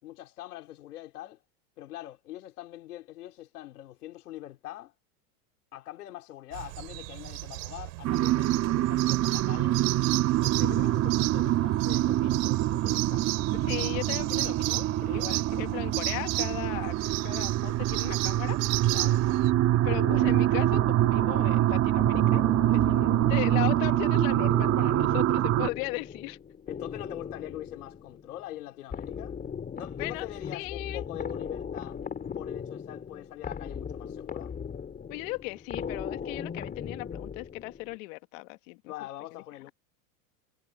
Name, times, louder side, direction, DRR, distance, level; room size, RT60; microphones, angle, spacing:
voice 1, 0.0-1.4 1.8-4.9 5.7-9.8 10.4-13.3 15.1-15.3 18.9-19.3 22.7-22.9 24.9-25.2 25.7-25.8 26.7-29.4 29.7-32.0 32.3-34.5 38.8-39.7, left 14 dB, 80° left, 4.7 m, -43 dB
sound 1, 6.5-19.5, right 29 dB, 60° right, 5.1 m, -35 dB
sound 2, 8.0-25.7, right 14 dB, 35° right, 1.7 m, -25 dB
voice 2, 13.6-14.9 15.1-16.9 17.2-18.6 19.8-22.4 22.7-26.4 30.0-30.3 30.5-31.0 35.1-38.8, left 25 dB, 60° left, 1.7 m, -37 dB
sound 3, 19.9-38.0, left 7 dB, 20° left, 3.9 m, -39 dB
supercardioid pair, 130°, 45 cm